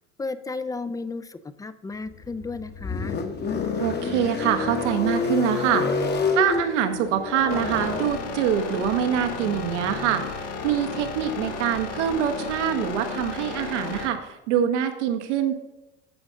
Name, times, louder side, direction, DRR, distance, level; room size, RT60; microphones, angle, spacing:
voice 1, 0.2-3.2, left 3 dB, 10° left, 13 dB, 0.4 m, -33 dB
sound 1, 2.1-12.3, left 4 dB, 30° left, 1.0 m, -30 dB
voice 2, 3.8-5.9 6.3-15.5, right 9 dB, 80° right, 6 dB, 1.3 m, -25 dB
sound 2, 7.5-14.1, left 4 dB, 80° left, 1.6 m, -33 dB
13.5 x 5.1 x 3.7 m, 0.97 s
hypercardioid pair, 95°, 35 cm